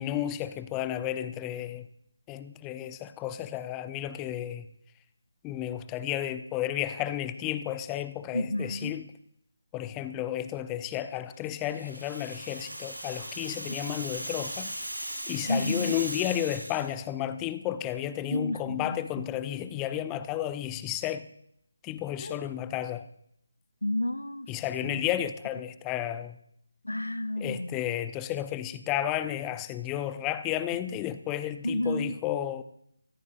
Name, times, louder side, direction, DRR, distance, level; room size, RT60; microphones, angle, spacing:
voice 1, 0.0-1.9 2.3-4.7 5.4-9.0 9.7-14.7 15.3-21.2 21.8-23.1 24.5-26.4 27.4-32.6, left 12 dB, 15° left, 13 dB, 0.5 m, -32 dB
voice 2, 8.3-8.9 13.7-14.0 15.5-16.0 18.3-19.3 22.2-22.5 23.8-24.5 24.8-25.1 26.8-27.8 30.7-30.8 31.6-32.2, left 1 dB, 75° left, 15 dB, 0.6 m, -31 dB
Rattle (instrument), 11.6-16.9, right 1 dB, 85° right, 7.2 m, -38 dB
25.5 x 13.5 x 2.5 m, 0.72 s
figure-of-eight pair, 155°, 0 cm